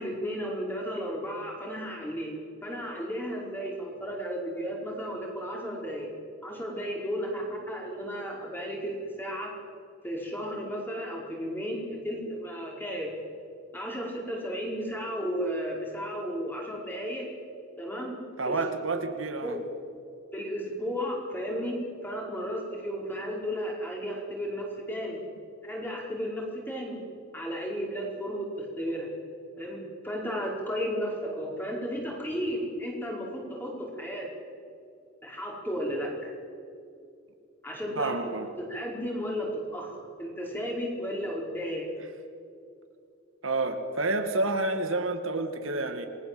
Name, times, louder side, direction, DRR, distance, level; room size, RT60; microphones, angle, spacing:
voice 1, 0.0-2.3 2.6-6.1 6.4-9.5 10.0-13.1 13.7-17.3 17.8-18.1 18.5-18.6 19.4-19.6 20.3-21.8 22.0-25.2 25.6-27.0 27.3-29.1 29.6-34.3 35.2-36.3 37.6-38.3 38.6-41.9, equal, 10° left, -1 dB, 5.3 m, -34 dB
voice 2, 18.4-19.5 38.0-38.5 43.4-46.1, right 2 dB, 80° right, 6 dB, 2.3 m, -29 dB
28.0 x 20.5 x 7.9 m, 2.5 s
head